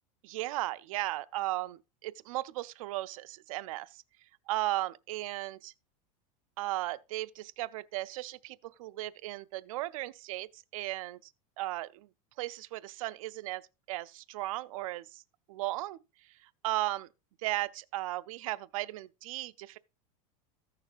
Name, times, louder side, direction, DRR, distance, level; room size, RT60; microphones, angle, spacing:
voice 1, 0.2-3.9 4.5-5.7 6.6-11.2 11.6-12.1 12.4-13.6 13.9-15.2 15.5-16.0 16.6-17.1 17.4-19.8, right 17 dB, 70° right, 0.5 m, -36 dB
15.0 x 6.6 x 2.5 m
supercardioid pair, 175°, 18 cm